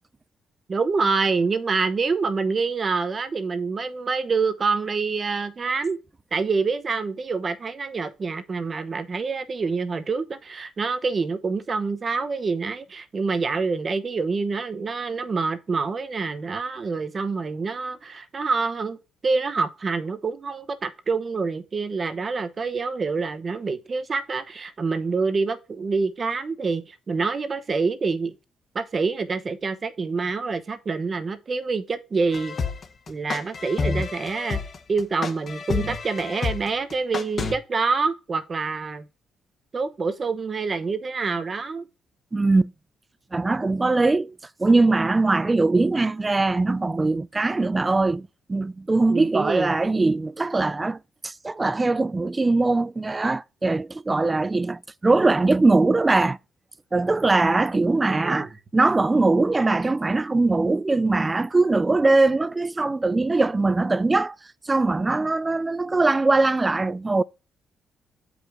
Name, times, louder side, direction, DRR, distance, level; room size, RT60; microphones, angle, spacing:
voice 1, 0.7-6.0 6.3-19.0 19.2-28.3 28.7-32.6 33.1-34.6 34.9-39.0 39.7-41.9 49.1-49.7 58.1-58.5, right 4 dB, 40° right, 0.9 m, -26 dB
sound 1, 32.3-37.5, left 4 dB, 45° left, 1.1 m, -29 dB
voice 2, 42.3-42.7 43.3-56.4 56.9-64.4 64.7-67.2, right 3 dB, 20° right, 0.3 m, -21 dB
7.6 x 5.1 x 3.5 m
cardioid pair, 90°, 0 cm